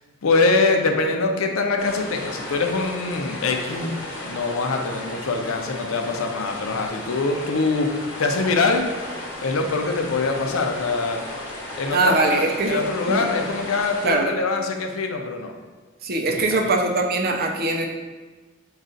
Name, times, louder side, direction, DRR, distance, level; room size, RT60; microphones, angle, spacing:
voice 1, 0.2-7.9 8.2-8.9 9.4-11.2 11.8-15.5 16.5-16.6, left 3 dB, 85° left, 4 dB, 0.5 m, -23 dB
sound 1, 1.8-14.2, left 1 dB, 70° left, 1.0 m, -35 dB
voice 2, 11.9-13.3 14.0-14.3 16.0-17.9, right 2 dB, 45° right, 2 dB, 0.5 m, -22 dB
5.3 x 2.4 x 3.8 m, 1.4 s
head